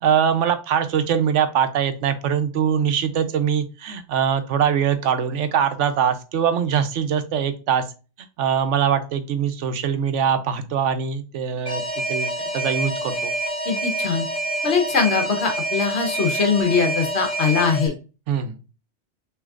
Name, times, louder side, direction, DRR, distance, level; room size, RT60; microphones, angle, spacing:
voice 1, 0.0-7.8 8.4-11.8 12.1-13.3 18.3-18.6, right 8 dB, 85° right, 9 dB, 1.0 m, -22 dB
Alarm, 11.7-17.9, right 1 dB, 45° left, 1.7 m, -27 dB
voice 2, 13.7-14.2 14.6-17.9, left 5 dB, 65° left, 4 dB, 1.4 m, -21 dB
6.3 x 3.2 x 2.4 m, 0.32 s
omnidirectional pair, 1.2 m